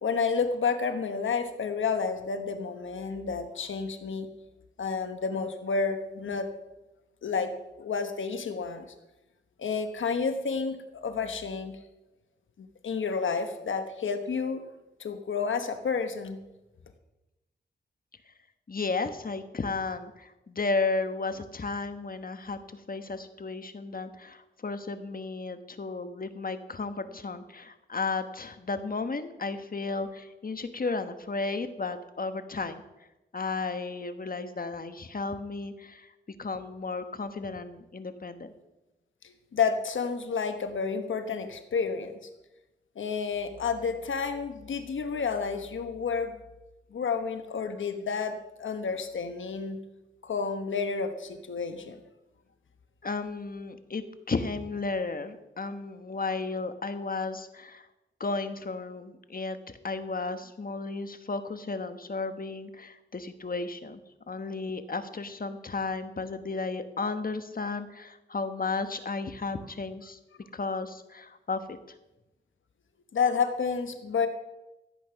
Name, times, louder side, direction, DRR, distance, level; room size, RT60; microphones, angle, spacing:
voice 1, 0.0-4.3 4.8-6.5 7.2-8.9 9.6-11.8 12.6-14.6 15.0-16.4 39.2-42.1 43.0-46.4 46.9-49.8 50.2-52.0 73.1-74.3, left 5 dB, 85° left, 8 dB, 1.2 m, -30 dB
voice 2, 18.7-32.8 33.3-36.1 36.4-38.5 53.0-57.9 58.2-59.6 59.8-64.0 64.3-70.2 70.5-71.8, left 3 dB, 45° left, 9 dB, 1.3 m, -34 dB
14.5 x 8.7 x 5.9 m, 0.99 s
cardioid pair, 55°, 20 cm